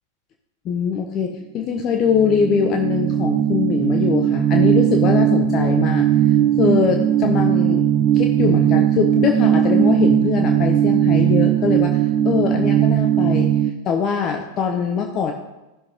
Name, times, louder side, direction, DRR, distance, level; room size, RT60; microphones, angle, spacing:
voice 1, 0.6-6.1 6.6-7.9 8.1-13.5 13.8-15.3, left 6 dB, 35° left, 3 dB, 0.9 m, -22 dB
sound 1, 2.0-13.7, right 10 dB, 35° right, 0.5 m, -18 dB
15.0 x 6.3 x 3.6 m, 1.0 s
figure-of-eight pair, 90°, 0 cm